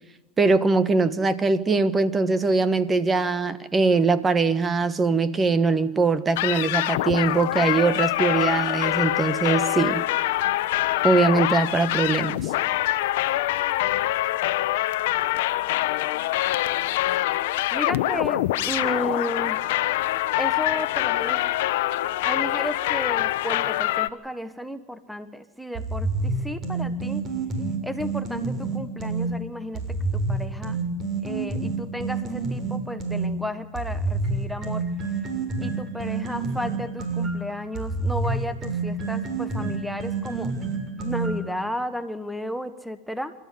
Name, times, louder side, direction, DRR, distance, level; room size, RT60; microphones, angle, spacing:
voice 1, 0.4-10.0 11.0-12.5, right 3 dB, 20° right, 12 dB, 1.4 m, -22 dB
sound 1, 6.4-24.1, left 16 dB, 70° left, 1.0 m, -24 dB
voice 2, 17.7-19.7 20.4-21.4 22.2-27.2 27.8-30.8 31.2-34.9 35.6-40.5 41.0-43.3, equal, ahead, 8 dB, 1.3 m, -33 dB
sound 2, 25.7-29.3 29.7-33.3 33.7-41.5, right 3 dB, 35° right, 6.9 m, -28 dB
27.5 x 14.0 x 9.8 m, 1.0 s
hypercardioid pair, 105°, 0 cm